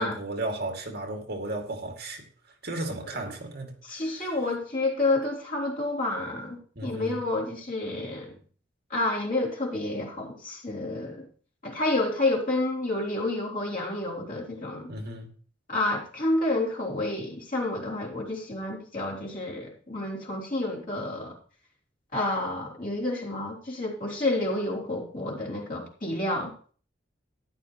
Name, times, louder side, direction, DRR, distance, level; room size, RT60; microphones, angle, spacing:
voice 1, 0.0-2.2 2.6-4.4 6.8-7.2 14.9-15.3, right 2 dB, 55° right, 2.3 m, -35 dB
voice 2, 3.8-8.4 8.9-11.3 11.6-14.9 15.7-21.4 22.1-26.5, left 2 dB, 45° left, 3.4 m, -29 dB
14.0 x 10.5 x 3.1 m
head